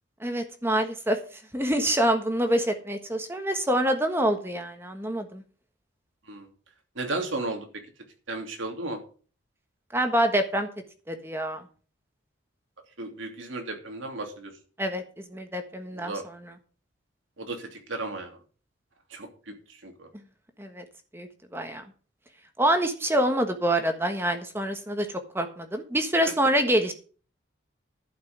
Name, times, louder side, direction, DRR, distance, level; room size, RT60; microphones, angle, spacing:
voice 1, 0.2-1.2 1.5-5.4 9.9-10.7 11.1-11.6 14.8-15.0 15.3-16.1 20.6-20.8 21.1-21.8 22.6-25.1 25.3-26.9, right 1 dB, 10° right, 6 dB, 1.4 m, -26 dB
voice 2, 6.9-7.7 8.3-9.0 13.0-14.5 15.9-16.2 17.4-18.4 19.1-20.1, right 2 dB, 85° right, 4 dB, 2.9 m, -34 dB
12.0 x 5.9 x 7.2 m, 0.39 s
head